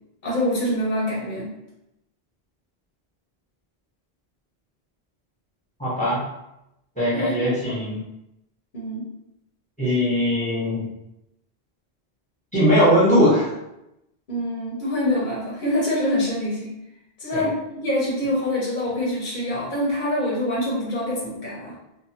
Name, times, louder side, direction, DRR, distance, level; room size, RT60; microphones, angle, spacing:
voice 1, 0.2-1.5 7.1-7.3 8.7-9.1 14.3-16.8 17.2-21.7, left 1 dB, 50° left, -6 dB, 0.9 m, -25 dB
voice 2, 5.8-6.2 7.0-8.0 9.8-10.8 12.5-13.5 17.3-17.5, equal, 5° left, -9 dB, 1.1 m, -20 dB
2.5 x 2.5 x 2.8 m, 0.87 s
omnidirectional pair, 1.0 m